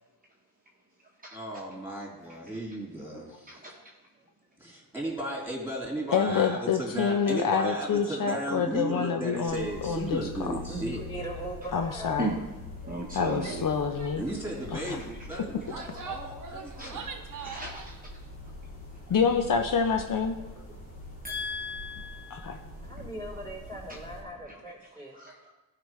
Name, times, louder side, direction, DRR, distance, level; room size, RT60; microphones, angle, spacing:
voice 1, 1.3-3.5 4.6-11.0 14.2-17.0, right 1 dB, 5° right, -3 dB, 3.1 m, -35 dB
voice 2, 3.5-3.8 9.5-9.8 12.2-12.4 12.8-13.7 14.1-14.2 15.3-16.0 16.7-17.0 17.3-18.0 19.1-19.2 20.7-20.8 21.2-22.6 22.9-23.0 23.9-24.0 24.5-24.6 25.1-25.5, right 1 dB, 25° right, -2 dB, 1.0 m, -37 dB
voice 3, 6.1-10.5 11.7-12.3 13.1-14.2 19.1-20.4 22.3-22.6, left 6 dB, 60° left, 5 dB, 0.6 m, -27 dB
sound 1, 9.5-24.2, left 2 dB, 40° left, 2.2 m, -44 dB
voice 4, 10.7-12.3 22.8-25.2, right 1 dB, 10° left, -2 dB, 3.1 m, -40 dB
Female speech woman speaking / Yell, 13.4-13.7 14.0-14.2 14.4-14.8 15.5-17.9, right 6 dB, 55° right, 0.9 m, -42 dB
14.0 x 5.0 x 3.1 m, 1.1 s
cardioid pair, 80°, 37 cm